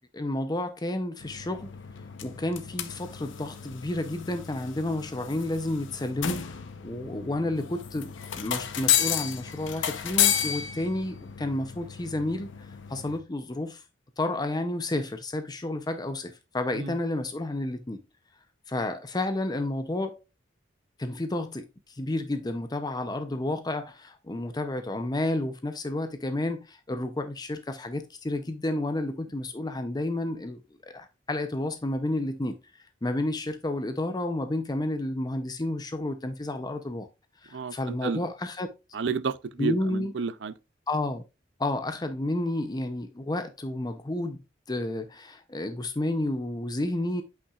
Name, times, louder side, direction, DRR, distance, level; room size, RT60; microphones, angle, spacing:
voice 1, 0.1-1.8 2.2-13.8 14.2-18.0 18.7-20.2 21.0-32.6 33.0-37.1 37.4-38.7 39.6-40.1 40.9-41.2 41.6-44.4 44.7-47.2, left 1 dB, 20° left, 0.6 m, -31 dB
sound 1, 1.2-13.2, left 10 dB, 85° left, 0.8 m, -32 dB
voice 2, 38.9-40.5, right 5 dB, 65° right, 0.5 m, -30 dB
8.4 x 5.7 x 2.4 m
head